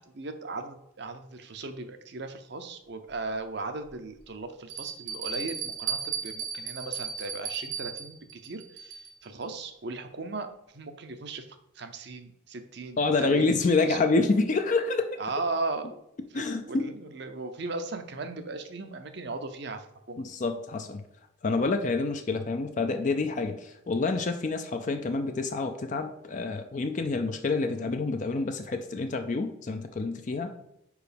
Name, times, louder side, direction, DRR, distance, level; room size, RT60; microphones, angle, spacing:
voice 1, 0.0-10.5 10.7-11.5 11.7-14.0 15.2-15.9 16.3-20.2, right 3 dB, 55° right, 8 dB, 0.6 m, -37 dB
Bell, 3.1-3.2 3.9-4.0 4.7-9.3, right 6 dB, 85° right, 1.3 m, -35 dB
voice 2, 13.0-15.2 16.3-16.9 20.2-21.0 21.4-30.5, left 3 dB, 40° left, 6 dB, 0.4 m, -27 dB
4.9 x 4.8 x 5.1 m, 0.82 s
head